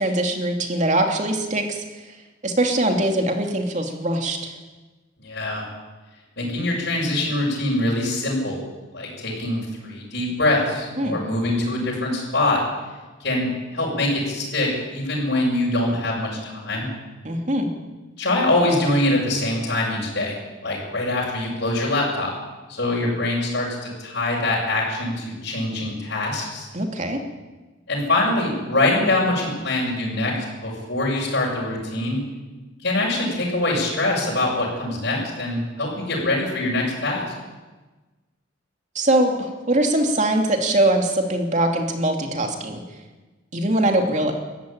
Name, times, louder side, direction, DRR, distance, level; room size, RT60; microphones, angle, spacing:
voice 1, 0.0-1.8 2.4-4.5 11.0-11.2 17.2-17.7 26.7-27.2 38.9-42.8 43.5-44.3, right 1 dB, 35° right, 3 dB, 2.8 m, -22 dB
voice 2, 5.2-5.7 6.4-8.6 8.9-12.6 13.2-16.9 18.2-20.3 20.6-22.3 22.7-26.7 27.9-30.3 30.6-32.2 32.8-37.3, left 2 dB, 55° left, -6 dB, 6.6 m, -23 dB
21.5 x 14.5 x 9.0 m, 1.2 s
head